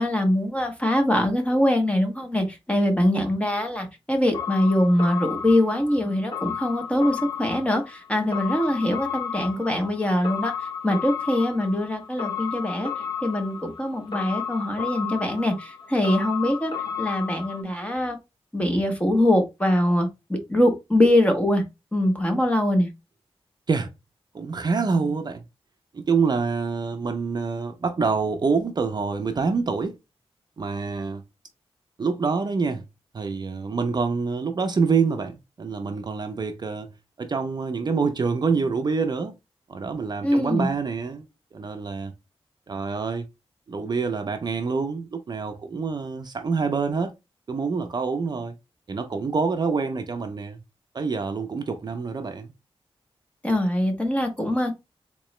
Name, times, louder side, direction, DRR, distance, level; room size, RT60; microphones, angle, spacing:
voice 1, 0.0-10.5 10.8-12.9 13.2-16.7 17.0-18.2 18.5-21.6 21.9-22.9 40.2-40.7 53.4-54.7, left 1 dB, 10° left, 0.8 m, -23 dB
sound 1, 4.3-17.6, left 7 dB, 45° left, 0.9 m, -33 dB
voice 2, 24.3-25.4 25.9-30.0 30.6-31.2 32.0-32.8 33.1-36.9 37.2-39.3 39.7-41.2 41.5-42.1 42.7-43.2 43.7-47.1 47.5-48.6 48.9-50.6 50.9-52.5, right 5 dB, 45° right, 0.5 m, -26 dB
3.7 x 3.0 x 3.0 m
wide cardioid pair, 175°, 10 cm